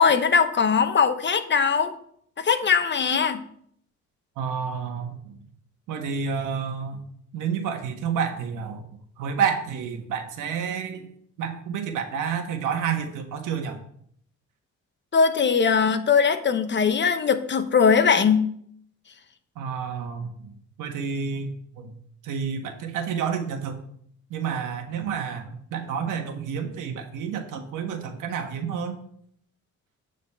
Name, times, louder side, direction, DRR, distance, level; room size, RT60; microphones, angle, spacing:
voice 1, 0.0-1.9 2.4-3.4 15.1-18.5, left 6 dB, 35° left, 10 dB, 0.9 m, -20 dB
voice 2, 4.4-5.4 5.9-7.0 7.3-8.8 9.2-11.0 11.4-13.8 19.5-20.5 20.8-21.9 22.2-23.8 24.3-29.0, right 6 dB, 85° right, 5 dB, 1.4 m, -29 dB
8.8 x 4.1 x 6.7 m, 0.65 s
cardioid pair, 90°, 30 cm